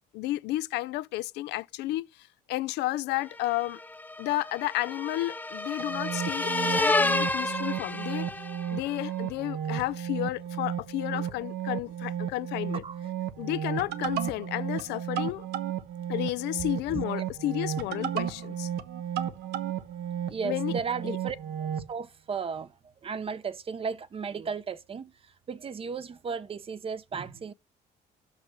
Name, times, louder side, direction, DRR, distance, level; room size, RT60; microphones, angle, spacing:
voice 1, 0.1-3.8 4.2-8.3 8.7-12.8 13.4-15.5 16.1-18.7 20.4-20.7 21.0-21.2, left 16 dB, 85° left, 0.5 m, -32 dB
sound 1, 3.4-8.8, left 2 dB, 10° left, 0.7 m, -30 dB
sound 2, 5.8-21.9, right 10 dB, 75° right, 1.2 m, -34 dB
voice 2, 20.3-27.5, right 5 dB, 35° right, 0.8 m, -35 dB
6.1 x 5.6 x 6.4 m
cardioid pair, 110°, 17 cm